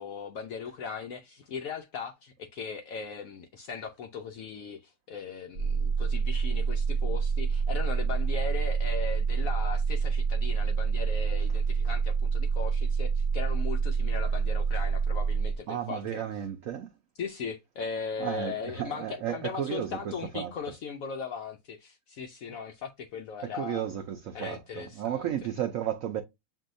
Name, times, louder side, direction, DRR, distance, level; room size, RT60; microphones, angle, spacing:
voice 1, 0.0-16.4 17.2-23.9 24.3-25.3, left 5 dB, 80° left, 0.7 m, -38 dB
sound 1, 5.5-15.6, right 5 dB, 70° right, 1.1 m, -27 dB
voice 2, 15.7-16.9 18.2-20.5 23.4-26.2, right 10 dB, 85° right, 0.7 m, -33 dB
7.3 x 2.7 x 2.5 m
omnidirectional pair, 2.0 m